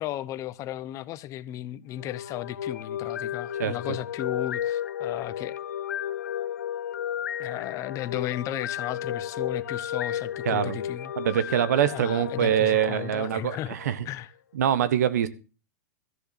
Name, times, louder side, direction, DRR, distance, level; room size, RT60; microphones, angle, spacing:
voice 1, 0.0-5.6 7.4-11.1 11.9-13.8 14.0-14.3, left 13 dB, 35° left, 0.9 m, -35 dB
sound 1, 1.9-14.0, left 10 dB, 90° left, 0.5 m, -33 dB
voice 2, 10.4-10.8 11.2-14.0 14.5-15.3, right 10 dB, 75° right, 1.4 m, -24 dB
14.0 x 6.7 x 7.4 m
hypercardioid pair, 120°, 9 cm